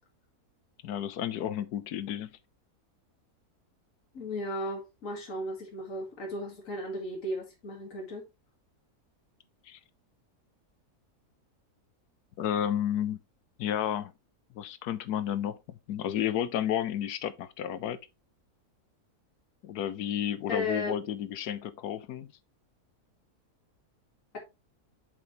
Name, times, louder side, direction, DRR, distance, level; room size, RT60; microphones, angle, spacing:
voice 1, 0.8-2.3 9.7-9.8 12.4-13.2 13.6-14.1 14.5-18.0 19.6-22.3, left 10 dB, 85° left, 1.3 m, -32 dB
voice 2, 4.1-8.3 20.5-20.9, left 1 dB, 55° left, 2.3 m, -35 dB
7.2 x 5.1 x 3.1 m
omnidirectional pair, 1.6 m